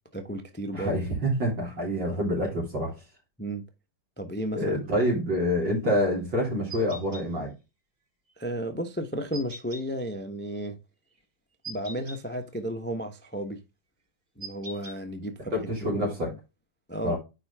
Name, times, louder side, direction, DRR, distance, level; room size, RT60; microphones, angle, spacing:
voice 1, 0.1-0.9 3.4-3.6 4.2-4.8 8.4-10.8 11.7-13.6 14.4-15.6 15.9-16.0 16.9-17.2, right 1 dB, 10° left, 0.4 m, -33 dB
voice 2, 0.7-2.9 4.5-7.5 15.5-16.3 17.0-17.2, equal, 65° right, 3.9 m, -27 dB
sound 1, 6.7-7.2 9.3-9.8 11.6-12.2 14.4-15.0, right 2 dB, 25° right, 1.2 m, -41 dB
9.7 x 4.5 x 3.5 m
omnidirectional pair, 2.2 m